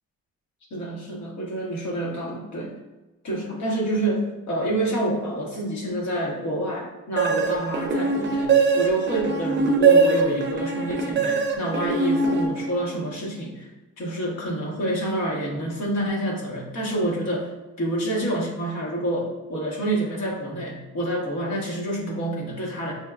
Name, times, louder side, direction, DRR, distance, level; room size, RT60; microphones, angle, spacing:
voice 1, 0.7-2.7 3.2-13.7 14.0-17.5 17.8-22.9, right 1 dB, 65° left, -3 dB, 1.3 m, -28 dB
sound 1, 7.2-13.0, right 4 dB, 40° right, 0.5 m, -22 dB
6.3 x 2.2 x 2.3 m, 1.1 s
cardioid pair, 90°, 30 cm